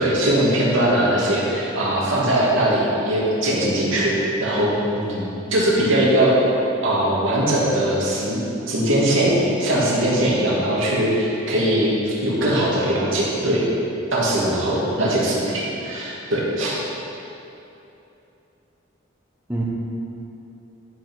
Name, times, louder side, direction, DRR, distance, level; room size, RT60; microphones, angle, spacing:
voice 1, 0.0-4.8 5.5-6.3 6.8-8.4 8.7-13.7 14.1-16.8, right 1 dB, 70° right, -6 dB, 2.7 m, -20 dB
voice 2, 5.0-5.3 14.4-14.7 19.5-19.6, equal, 10° right, -5 dB, 1.2 m, -28 dB
12.5 x 5.9 x 6.3 m, 2.9 s
head